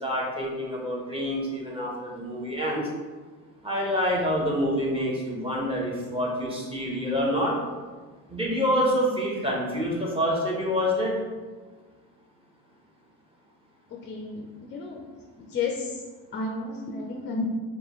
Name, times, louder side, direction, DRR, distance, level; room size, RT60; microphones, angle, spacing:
voice 1, 0.0-2.9 3.6-7.5 8.3-11.1, equal, 15° right, -3 dB, 1.0 m, -27 dB
voice 2, 14.0-15.0 15.4-16.0 16.3-17.5, left 3 dB, 30° left, 0 dB, 0.4 m, -32 dB
4.7 x 2.3 x 3.0 m, 1.4 s
cardioid pair, 100°, 38 cm